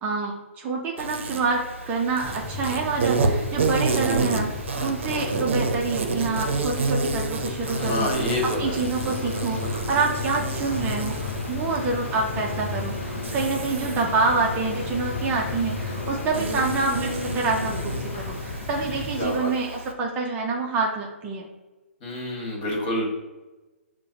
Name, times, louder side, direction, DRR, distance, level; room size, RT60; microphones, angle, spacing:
voice 1, 0.0-21.5, right 4 dB, 20° right, -1 dB, 0.5 m, -27 dB
Insect, 1.0-19.9, right 3 dB, 60° right, 0.6 m, -30 dB
sound 1, 2.2-19.4, left 3 dB, 20° left, 0.6 m, -36 dB
sound 2, 7.5-18.9, left 4 dB, 70° left, 0.4 m, -36 dB
voice 2, 7.8-9.1 19.2-19.5 22.0-23.1, left 1 dB, 40° left, -2 dB, 1.5 m, -28 dB
6.1 x 2.1 x 2.8 m, 1.2 s
figure-of-eight pair, 130°, 7 cm